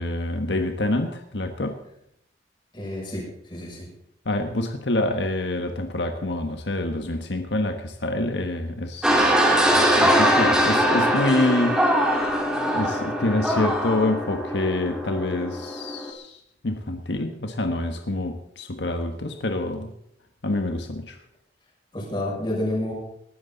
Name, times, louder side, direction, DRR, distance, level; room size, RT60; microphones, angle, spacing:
voice 1, 0.0-1.8 4.2-9.3 9.7-12.0 12.7-16.4 16.6-19.9 20.4-21.2, left 2 dB, 90° left, 5 dB, 1.4 m, -26 dB
voice 2, 2.7-3.9 21.9-22.9, left 1 dB, 30° left, -3 dB, 6.8 m, -29 dB
sound 1, 9.0-16.1, equal, 5° right, 2.8 m, -22 dB
19.5 x 12.5 x 4.0 m, 0.76 s
head